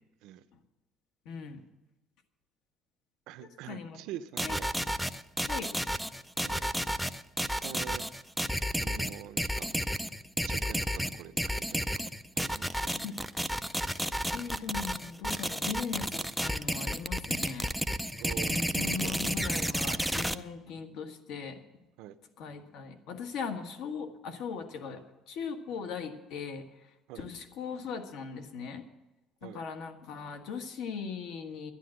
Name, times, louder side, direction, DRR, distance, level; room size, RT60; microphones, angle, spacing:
voice 1, 1.2-1.6 3.7-4.0 4.4-4.6 5.5-5.7 13.0-13.2 14.3-17.7 18.5-21.6 22.4-26.6 27.1-28.8 29.4-31.7, left 6 dB, 65° left, 6 dB, 1.5 m, -39 dB
voice 2, 3.3-4.7 6.4-6.7 7.6-8.1 8.8-9.7 10.5-11.8 12.4-12.9 18.2-19.2 22.0-22.2 27.1-27.3 29.4-29.6, right 12 dB, 75° right, 11 dB, 0.7 m, -45 dB
sound 1, 4.4-20.3, equal, ahead, 0.4 m, -31 dB
11.5 x 10.5 x 7.7 m, 1.1 s
cardioid pair, 165°, 0 cm